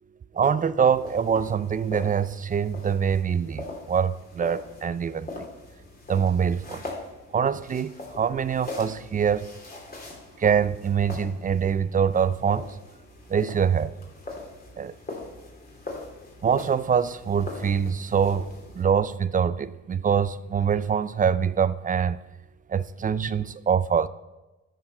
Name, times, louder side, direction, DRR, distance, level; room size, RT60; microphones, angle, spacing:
voice 1, 0.4-5.3 6.1-6.8 7.3-9.5 10.4-12.7 13.3-13.9 14.8-14.9 16.4-18.5 18.8-22.2 22.7-24.1, right 7 dB, 30° right, 0.4 m, -24 dB
sound 1, 0.9-18.8, left 2 dB, 30° left, 3.0 m, -42 dB
9.7 x 6.6 x 5.4 m
cardioid pair, 90°, 30 cm